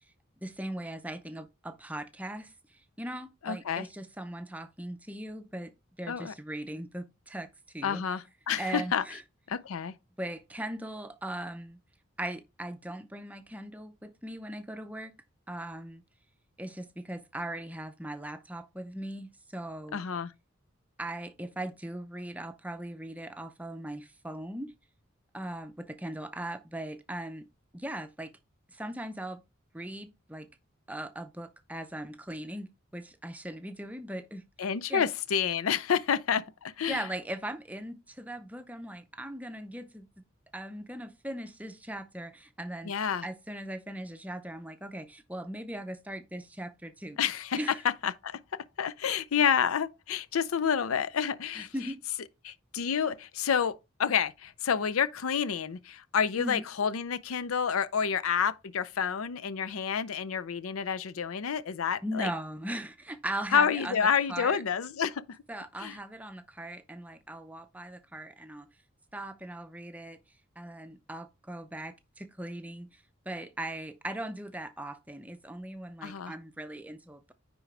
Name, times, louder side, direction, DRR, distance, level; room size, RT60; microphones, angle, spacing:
voice 1, 0.4-5.7 6.0-7.5 7.7-8.0 8.6-9.2 10.2-11.8 12.2-15.1 15.5-16.0 16.6-20.0 21.0-24.7 25.3-27.5 27.7-28.3 28.7-29.4 29.7-30.5 30.9-34.4 34.9-35.0 36.9-40.1 40.5-42.9 43.2-47.2 47.6-47.8 51.6-52.0 56.4-56.7 62.0-64.6 65.5-68.7 69.1-70.2 70.6-77.3, right 1 dB, 5° right, 0.6 m, -39 dB
voice 2, 3.4-3.9 6.1-6.3 7.8-9.0 9.5-9.9 19.9-20.3 34.6-37.1 42.8-43.2 47.2-47.6 48.0-48.4 48.8-51.9 52.4-53.7 54.0-62.3 63.5-65.2 65.8-66.0 76.0-76.3, left 7 dB, 90° left, 0.5 m, -29 dB
9.7 x 3.8 x 3.3 m
head